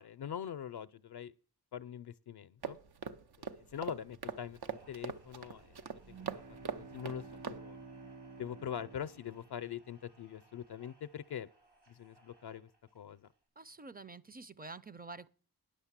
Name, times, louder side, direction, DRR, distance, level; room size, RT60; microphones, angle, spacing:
voice 1, 0.0-1.3 1.7-2.8 3.4-5.8 6.1-6.4 6.8-7.8 8.4-11.5 11.9-12.7 12.9-13.3, left 9 dB, 75° left, 0.5 m, -43 dB
sound 1, 2.6-7.6, right 6 dB, 70° right, 0.8 m, -43 dB
sound 2, 4.5-13.4, right 2 dB, 90° right, 4.9 m, -67 dB
sound 3, 6.0-10.0, right 4 dB, 45° right, 1.4 m, -51 dB
voice 2, 13.6-15.3, right 3 dB, 25° right, 0.5 m, -48 dB
10.5 x 6.5 x 7.3 m
wide cardioid pair, 65°, 39 cm